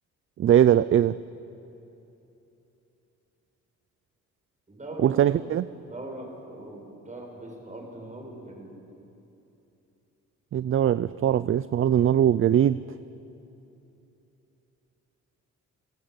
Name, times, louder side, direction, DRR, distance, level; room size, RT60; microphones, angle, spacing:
voice 1, 0.4-1.2 5.0-5.7 10.5-12.8, right 10 dB, 45° right, 16 dB, 0.5 m, -21 dB
voice 2, 4.7-5.5 5.8-8.7, right 1 dB, 25° right, 1 dB, 6.5 m, -41 dB
28.0 x 17.5 x 8.1 m, 2.9 s
cardioid pair, 90°, 30 cm